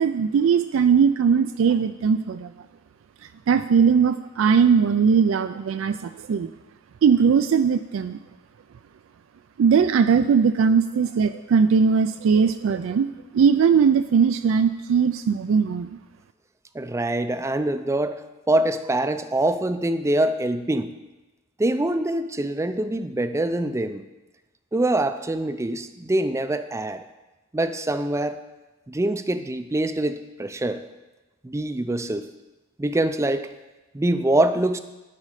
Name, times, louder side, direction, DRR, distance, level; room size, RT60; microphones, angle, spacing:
voice 1, 0.0-2.5 3.5-6.5 7.0-8.2 9.6-16.0, right 6 dB, 80° right, 10 dB, 0.3 m, -19 dB
voice 2, 16.7-18.2 18.5-20.9 21.6-24.0 24.7-27.0 27.5-28.4 28.9-30.8 31.4-32.2 32.8-33.5 33.9-34.8, right 1 dB, 15° right, 10 dB, 0.4 m, -24 dB
12.5 x 5.3 x 4.9 m, 1.1 s
head